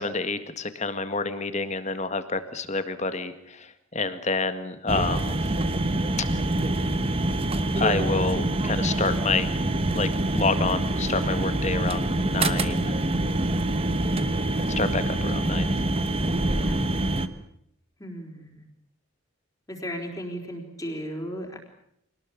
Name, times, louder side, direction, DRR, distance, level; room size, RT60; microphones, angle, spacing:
voice 1, 0.0-5.4 7.8-9.5 9.9-13.0 14.8-15.7, left 3 dB, 30° left, 10 dB, 1.8 m, -28 dB
sound 1, 4.9-17.3, right 1 dB, 25° right, 1.2 m, -25 dB
voice 2, 18.0-18.5 19.7-21.6, equal, 15° left, 1 dB, 4.2 m, -35 dB
26.0 x 19.0 x 8.5 m, 0.73 s
head